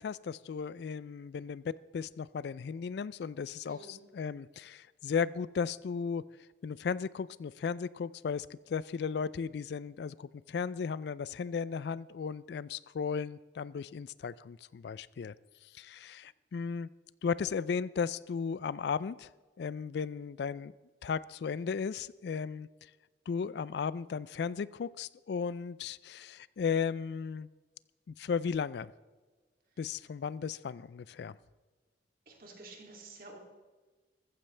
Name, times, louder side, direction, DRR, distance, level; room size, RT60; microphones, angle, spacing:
voice 1, 0.0-6.2 6.6-15.3 15.6-16.9 17.2-19.3 19.6-20.7 21.0-22.9 23.3-27.5 28.1-28.9 29.8-31.4, left 6 dB, 65° left, 19 dB, 0.3 m, -35 dB
voice 2, 3.7-4.0 32.3-33.4, right 2 dB, 50° right, 1 dB, 2.6 m, -50 dB
14.5 x 14.5 x 3.3 m, 1.3 s
head